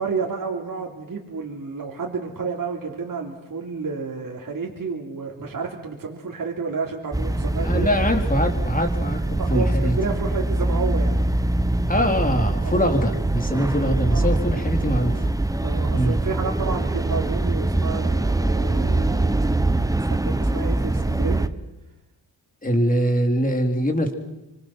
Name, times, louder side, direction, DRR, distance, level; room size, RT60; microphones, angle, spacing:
voice 1, 0.0-7.9 9.4-11.2 12.6-12.8 14.1-14.3 15.6-21.5, right 4 dB, 50° right, -1 dB, 3.5 m, -30 dB
sound 1, 7.1-21.5, right 2 dB, 10° right, 0.9 m, -23 dB
voice 2, 7.6-10.0 11.9-15.3 15.9-16.2 22.6-24.1, equal, 20° left, 3 dB, 3.7 m, -23 dB
25.5 x 25.5 x 6.0 m, 0.98 s
cardioid pair, 80°, 41 cm